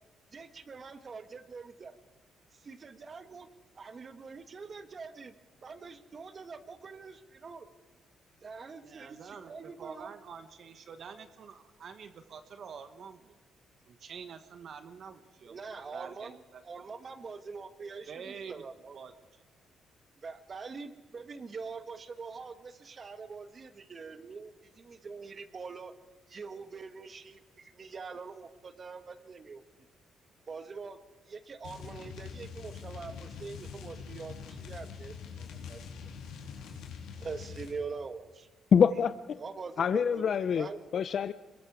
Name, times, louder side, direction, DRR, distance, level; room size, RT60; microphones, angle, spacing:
voice 1, 0.3-2.0 2.6-3.5 3.7-5.3 5.6-7.7 8.4-10.1 15.5-16.4 16.6-18.1 18.5-19.0 20.2-25.9 26.3-29.6 30.5-31.0 31.3-36.0 37.2-38.5 39.4-39.8 40.4-40.8, right 4 dB, 40° right, 10 dB, 1.5 m, -44 dB
voice 2, 8.8-13.4 13.8-16.6 18.1-18.6 18.9-19.1, right 6 dB, 60° right, 9 dB, 1.4 m, -47 dB
sound 1, 31.6-37.8, left 6 dB, 90° left, 3.4 m, -44 dB
voice 3, 38.7-39.1 39.8-40.7 40.9-41.3, left 7 dB, 55° left, 13 dB, 0.6 m, -25 dB
26.0 x 22.0 x 4.9 m, 1.3 s
cardioid pair, 90°, 0 cm